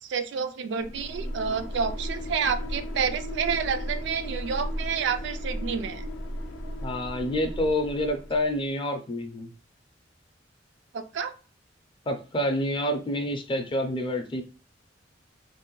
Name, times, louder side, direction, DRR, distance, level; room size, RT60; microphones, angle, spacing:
voice 1, 0.0-6.0 10.9-11.3, right 6 dB, 70° right, 9 dB, 0.3 m, -29 dB
sound 1, 0.8-8.6, equal, 80° left, 0.5 m, -35 dB
voice 2, 6.8-9.5 12.1-14.4, left 1 dB, 25° left, 5 dB, 0.4 m, -28 dB
2.6 x 2.1 x 2.9 m, 0.37 s
head